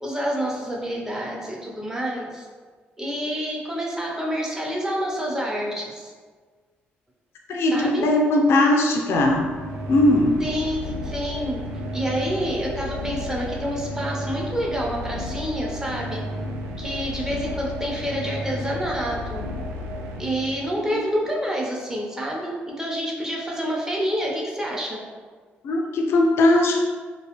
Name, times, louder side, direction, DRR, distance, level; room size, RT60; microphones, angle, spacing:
voice 1, 0.0-2.5 3.0-6.1 7.7-8.1 10.4-11.6 11.9-16.2 16.8-19.5 20.2-25.0, equal, 10° right, -3 dB, 0.7 m, -28 dB
voice 2, 7.5-9.4 9.9-10.4 20.9-21.0 25.6-26.8, left 1 dB, 70° left, 0 dB, 0.4 m, -19 dB
sound 1, 9.1-20.9, left 1 dB, 85° right, 0.3 m, -33 dB
2.4 x 2.3 x 2.9 m, 1.5 s
supercardioid pair, 60°, 4 cm